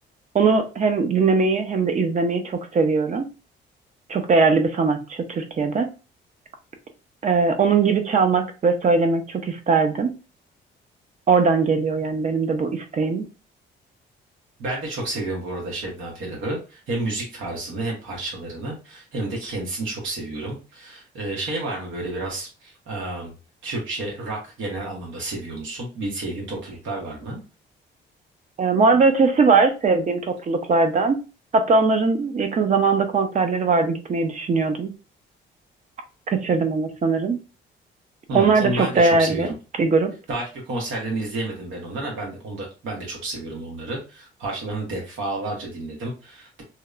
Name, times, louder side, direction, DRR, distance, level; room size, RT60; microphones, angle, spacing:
voice 1, 0.3-3.3 4.1-5.9 7.2-10.1 11.3-13.3 28.6-31.2 31.5-34.9 36.3-37.4 38.3-39.5 39.8-40.1, right 4 dB, 40° right, 6 dB, 0.5 m, -20 dB
voice 2, 14.6-23.3 23.6-27.4 38.3-39.5 40.3-46.6, right 2 dB, 80° right, -2 dB, 1.0 m, -30 dB
2.8 x 2.0 x 2.3 m, 0.32 s
cardioid pair, 90°, 20 cm